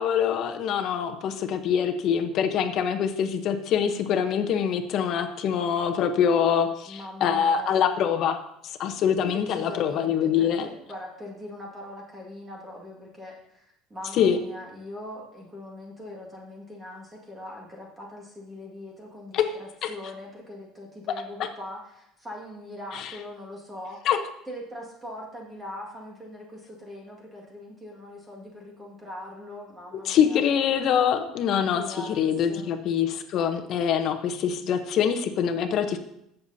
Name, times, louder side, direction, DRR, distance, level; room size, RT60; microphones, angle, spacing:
voice 1, 0.0-8.4 8.8-10.7 14.2-14.4 19.3-19.5 19.8-19.9 21.4-21.5 22.9-23.1 24.0-24.2 30.1-36.0, left 8 dB, 45° left, 7 dB, 0.9 m, -24 dB
voice 2, 6.9-7.9 9.3-24.0 24.5-30.4 31.7-32.7, left 1 dB, 15° right, -2 dB, 2.0 m, -41 dB
16.5 x 6.8 x 2.8 m, 0.78 s
cardioid pair, 155°, 0 cm